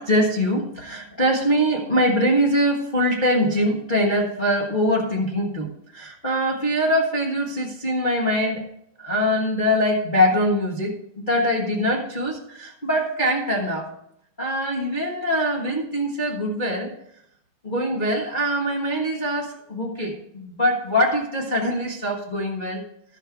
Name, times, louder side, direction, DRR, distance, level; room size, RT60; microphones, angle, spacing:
voice 1, 0.0-8.6 9.0-13.9 14.4-16.9 17.6-22.8, equal, 80° left, -2 dB, 0.4 m, -23 dB
12.5 x 6.6 x 4.7 m, 0.72 s
omnidirectional pair, 3.5 m